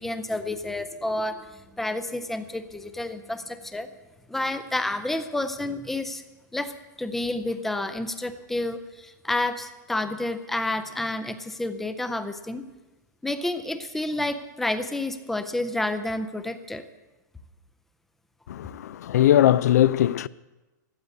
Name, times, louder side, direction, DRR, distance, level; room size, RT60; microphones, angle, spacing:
voice 1, 0.0-3.9 4.3-6.2 6.5-6.7 7.0-12.6 13.2-16.8, left 2 dB, ahead, 0.5 m, -30 dB
voice 2, 18.5-20.3, left 12 dB, 55° left, 0.4 m, -20 dB
15.0 x 7.9 x 8.3 m
hypercardioid pair, 170°, 10 cm